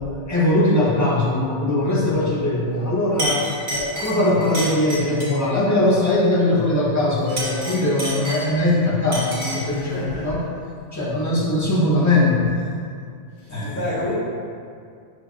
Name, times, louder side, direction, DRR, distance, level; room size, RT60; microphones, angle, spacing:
voice 1, 0.0-10.4 10.9-12.6 13.5-13.8, left 1 dB, 20° left, -8 dB, 0.6 m, -20 dB
Chink clink, 2.7-2.9 3.2-5.4 7.2-8.7 9.1-9.7, right 1 dB, 45° right, 1.2 m, -29 dB
voice 2, 9.6-10.5 13.4-14.1, left 1 dB, 65° left, -13 dB, 2.0 m, -30 dB
6.3 x 2.4 x 2.4 m, 2.3 s
omnidirectional pair, 1.2 m